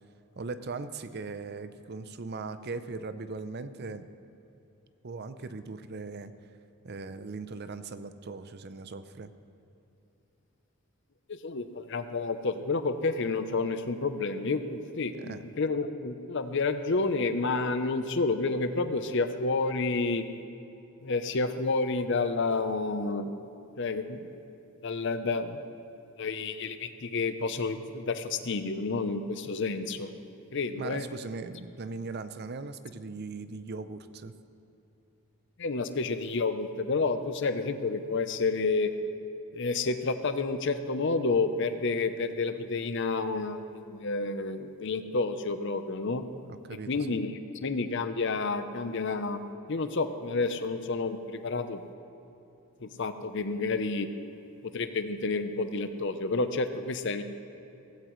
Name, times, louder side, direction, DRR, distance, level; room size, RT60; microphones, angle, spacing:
voice 1, 0.4-4.1 5.0-6.3 6.8-9.3 15.2-15.4 30.7-34.3 46.3-47.2, right 4 dB, 50° right, 12 dB, 0.5 m, -39 dB
voice 2, 11.3-20.3 21.0-23.3 23.8-24.4 24.8-25.6 26.2-30.1 30.5-31.1 35.6-38.9 39.5-46.2 46.7-47.3 47.6-49.4 49.7-51.8 52.8-54.1 54.6-57.2, left 3 dB, 55° left, 10 dB, 0.7 m, -30 dB
16.5 x 16.0 x 3.2 m, 2.8 s
head